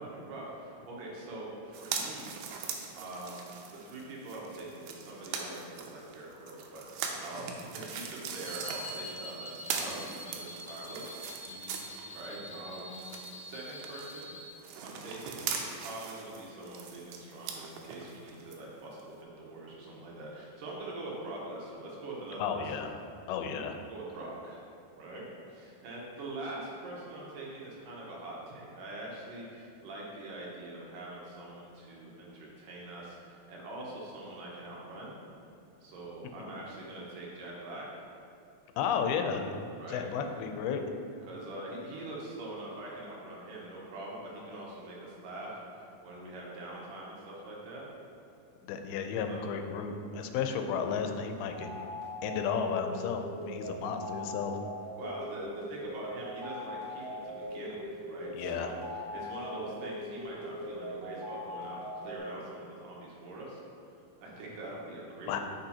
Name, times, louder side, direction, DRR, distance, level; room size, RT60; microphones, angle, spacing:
voice 1, 0.0-2.4 2.9-11.2 12.1-14.3 14.8-22.9 23.9-24.6 25.0-35.2 35.8-37.9 39.8-40.1 41.3-47.9 49.3-49.5 55.0-63.6 64.2-65.4, right 2 dB, 70° right, -4 dB, 2.6 m, -43 dB
sound 1, 1.7-12.5 12.8-18.6 19.0-19.1, right 6 dB, 90° right, 2.5 m, -41 dB
sound 2, 8.3-14.5, right 1 dB, 50° left, 1.6 m, -45 dB
voice 2, 11.5-11.9 22.4-22.9 23.3-23.8 36.4-36.6 38.8-39.5 39.9-40.8 48.6-51.8 52.2-54.6 58.3-58.7 65.3-65.4, left 6 dB, 90° left, 6 dB, 2.5 m, -33 dB
sound 3, 51.5-62.2, left 1 dB, 50° right, 1.9 m, -41 dB
8.9 x 5.7 x 2.8 m, 2.6 s
omnidirectional pair, 4.3 m